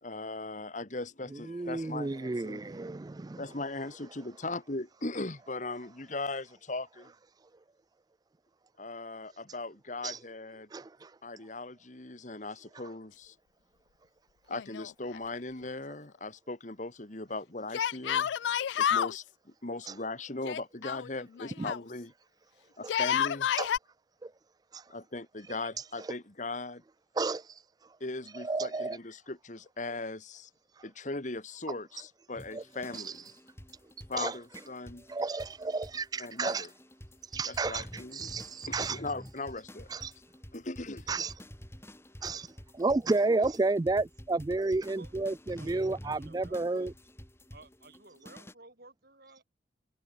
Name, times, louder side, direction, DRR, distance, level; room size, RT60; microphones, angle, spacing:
voice 1, 0.0-2.6 3.4-7.1 8.8-10.7 11.2-13.4 14.5-18.4 18.7-22.1 22.8-23.5 24.9-26.8 28.0-30.5 30.8-33.1 34.1-35.0 36.2-36.7 37.7-38.3 38.7-39.9 40.5-41.1, left 2 dB, 45° left, 1.9 m, -39 dB
voice 2, 1.5-3.4 10.0-10.2 10.7-11.1 19.9-20.0 21.6-21.7 22.8-22.9 23.6-23.7 24.2-24.3 24.7-24.9 25.8-26.1 27.2-27.6 28.3-29.0 30.8-30.9 32.5-32.6 32.9-33.2 34.1-34.4 35.1-36.7 37.2-39.0 39.9-40.1 41.1-41.3 42.2-46.9, right 3 dB, 20° right, 0.4 m, -32 dB
Yell, 14.5-15.4 15.6-15.7 17.7-19.2 20.4-21.8 22.8-23.8, left 9 dB, 75° left, 0.3 m, -30 dB
sound 1, 32.4-48.5, equal, 15° left, 7.3 m, -49 dB
voice 3, 44.8-45.1 45.6-46.9 47.5-49.5, right 2 dB, 55° right, 6.8 m, -55 dB
head